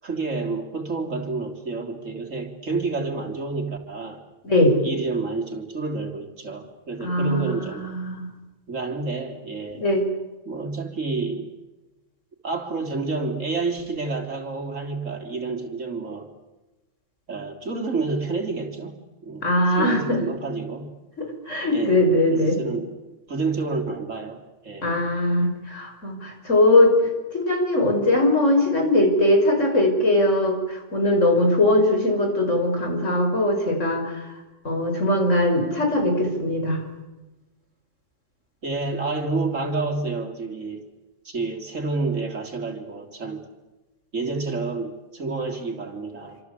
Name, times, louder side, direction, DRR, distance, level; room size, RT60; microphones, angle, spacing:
voice 1, 0.0-4.2 4.8-7.9 8.7-9.8 10.5-11.5 12.4-16.3 17.3-18.9 19.2-20.9 21.7-22.0 22.3-22.9 23.3-25.0 38.6-40.8 41.3-43.5 44.1-46.4, right 3 dB, 80° right, 3 dB, 3.9 m, -29 dB
voice 2, 4.4-4.8 7.0-8.3 9.8-10.0 19.4-20.2 21.2-22.5 24.8-34.2 34.6-36.8, left 1 dB, 75° left, 3 dB, 6.2 m, -20 dB
27.5 x 26.0 x 8.3 m, 1.1 s
omnidirectional pair, 1.3 m